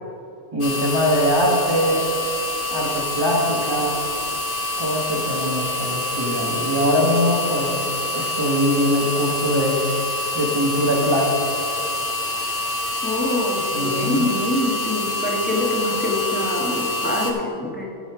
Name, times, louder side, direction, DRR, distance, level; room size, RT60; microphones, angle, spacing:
voice 1, 0.5-2.0 2.7-4.0 4.8-7.8 8.1-9.8 10.3-11.4 13.7-14.3, equal, 20° right, -5 dB, 1.2 m, -22 dB
sound 1, 0.6-17.3, left 2 dB, 45° left, 1.0 m, -26 dB
voice 2, 13.0-17.9, left 1 dB, 10° left, -2 dB, 1.2 m, -25 dB
11.0 x 5.4 x 5.9 m, 2.8 s
omnidirectional pair, 1.4 m